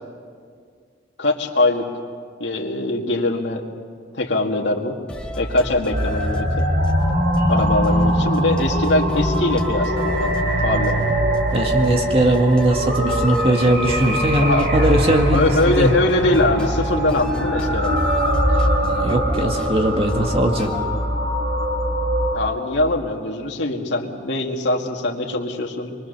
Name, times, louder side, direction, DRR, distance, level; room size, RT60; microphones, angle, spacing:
voice 1, 1.2-1.9 2.4-3.6 4.1-5.0 5.4-6.5 7.5-11.0 14.4-15.0 15.3-18.1 22.3-26.0, left 2 dB, 85° left, 0 dB, 2.0 m, -22 dB
sound 1, 5.1-20.8, equal, 5° left, 2.8 m, -33 dB
sound 2, 5.9-22.4, equal, 65° right, 4.2 m, -22 dB
voice 2, 11.5-15.9 18.8-20.7, right 1 dB, 35° right, 3 dB, 2.1 m, -20 dB
25.0 x 23.5 x 6.7 m, 2.1 s
head